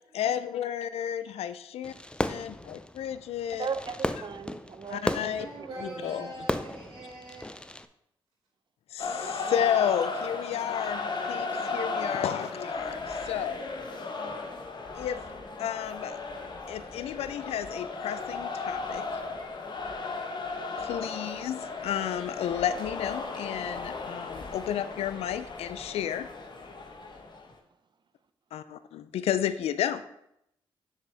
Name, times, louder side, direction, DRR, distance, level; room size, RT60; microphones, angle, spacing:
voice 1, 0.1-1.9 2.3-3.7 4.9-5.5 5.8-6.5 8.9-13.7 14.9-15.2 15.6-16.2 16.7-19.1 20.8-26.3 28.5-30.0, left 10 dB, 80° left, 13 dB, 0.4 m, -32 dB
Fireworks, 1.8-7.9, left 1 dB, 10° left, 0.5 m, -35 dB
voice 2, 3.6-5.3 5.6-6.3, right 5 dB, 50° right, 10 dB, 0.7 m, -37 dB
voice 3, 5.4-7.5, right 1 dB, 70° right, -11 dB, 2.8 m, -42 dB
sound 1, 9.0-27.5, left 4 dB, 45° left, 1.2 m, -36 dB
7.3 x 6.5 x 3.4 m, 0.78 s
supercardioid pair, 50°, 10 cm